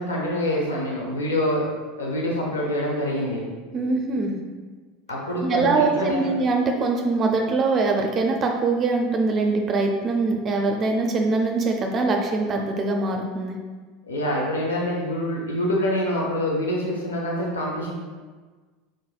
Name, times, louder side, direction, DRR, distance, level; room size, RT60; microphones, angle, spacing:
voice 1, 0.0-1.6 1.9-3.4 5.1-6.3 14.0-17.9, left 1 dB, 90° left, -2 dB, 0.8 m, -26 dB
voice 2, 3.7-4.4 5.4-13.6, right 3 dB, 40° right, 2 dB, 0.5 m, -23 dB
4.8 x 4.3 x 2.3 m, 1.4 s
hypercardioid pair, 85°, 0 cm